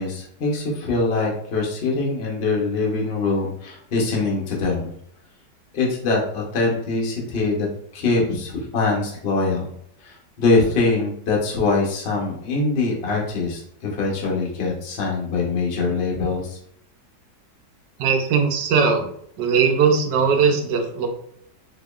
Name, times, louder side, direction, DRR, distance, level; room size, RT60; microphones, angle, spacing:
voice 1, 0.0-4.9 5.7-7.7 7.9-9.7 10.0-16.6, left 3 dB, 45° left, -2 dB, 0.8 m, -23 dB
voice 2, 18.0-19.1 19.4-21.1, right 5 dB, 75° right, 4 dB, 1.2 m, -19 dB
4.0 x 2.9 x 2.3 m, 0.67 s
omnidirectional pair, 1.9 m